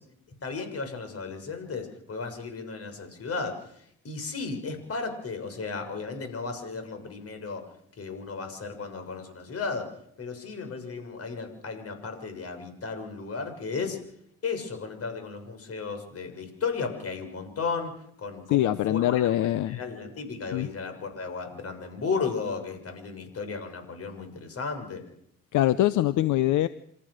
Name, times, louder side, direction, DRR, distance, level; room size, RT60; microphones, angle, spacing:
voice 1, 0.4-7.6 8.0-14.0 14.4-17.9 18.2-25.0, left 4 dB, 50° left, 6 dB, 6.6 m, -34 dB
voice 2, 18.5-19.8 20.5-20.7 25.5-26.7, left 13 dB, 80° left, 14 dB, 0.8 m, -23 dB
27.5 x 14.5 x 6.6 m, 0.68 s
cardioid pair, 90°, 30 cm